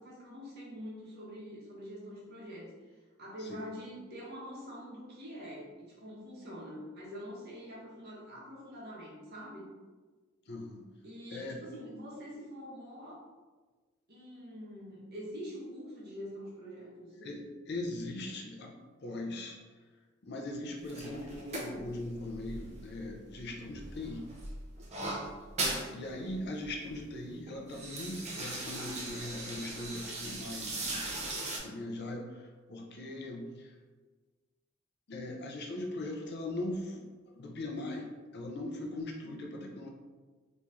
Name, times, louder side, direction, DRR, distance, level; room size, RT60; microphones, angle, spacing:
voice 1, 0.0-9.7 11.0-13.2 14.1-17.1 25.9-26.5, equal, 55° right, -6 dB, 1.2 m, -45 dB
voice 2, 10.5-10.9 11.3-11.6 17.1-19.6 20.2-24.3 25.0-25.2 25.9-31.2 31.6-33.7 35.1-39.9, left 1 dB, 55° left, 1 dB, 0.6 m, -40 dB
sound 1, 20.8-23.4 23.7-25.9 26.3-26.4 26.6-27.0 27.5-31.6, right 2 dB, 35° right, 0.7 m, -39 dB
3.1 x 2.7 x 3.5 m, 1.4 s
head